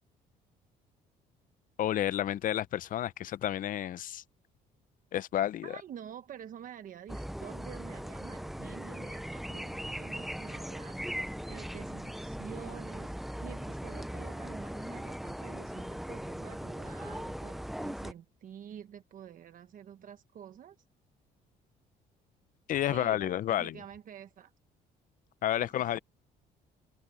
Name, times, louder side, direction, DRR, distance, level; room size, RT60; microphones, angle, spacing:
voice 1, 1.8-4.2 5.1-5.8 22.7-23.7 25.4-26.0, left 12 dB, 55° left, 0.6 m, -30 dB
voice 2, 5.6-20.8 22.9-24.5 25.6-26.0, right 9 dB, 55° right, 1.3 m, -48 dB
sound 1, 7.1-18.1, equal, ahead, 0.6 m, -39 dB
open air
cardioid pair, 110°, 17 cm